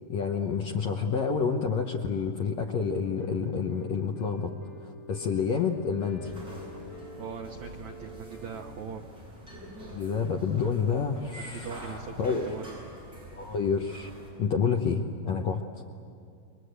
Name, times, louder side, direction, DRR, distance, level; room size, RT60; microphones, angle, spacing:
voice 1, 0.1-4.5 4.8-6.3 9.9-11.8 12.2-12.4 13.3-14.1 14.4-15.6, left 6 dB, 85° left, 2 dB, 1.5 m, -28 dB
sound 1, 3.0-8.8, left 3 dB, 35° left, 5.8 m, -46 dB
sound 2, 6.2-14.3, right 1 dB, 25° right, 8.5 m, -46 dB
voice 2, 7.2-9.0 11.4-12.1 12.4-12.8, right 6 dB, 85° right, 4 dB, 1.6 m, -40 dB
29.5 x 23.5 x 8.1 m, 2.4 s
omnidirectional pair, 4.6 m